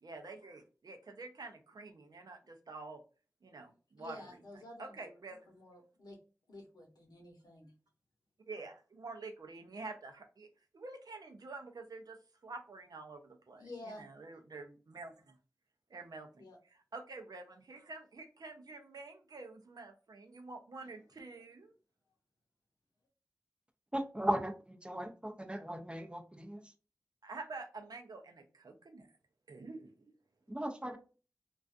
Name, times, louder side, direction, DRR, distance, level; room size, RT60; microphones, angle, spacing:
voice 1, 0.0-3.0 3.4-4.2 4.8-5.5 8.5-10.5 10.7-15.3 15.9-16.5 16.9-21.7 27.2-29.1 29.5-29.9, right 3 dB, 75° right, 4 dB, 0.5 m, -48 dB
voice 2, 4.0-5.2 5.5-6.2 6.5-7.7 13.6-14.0 16.4-16.6, left 2 dB, 80° left, 0 dB, 0.9 m, -51 dB
voice 3, 23.9-26.6 30.5-31.0, equal, 15° right, 5 dB, 0.5 m, -37 dB
2.4 x 2.3 x 2.4 m, 0.35 s
cardioid pair, 45°, 7 cm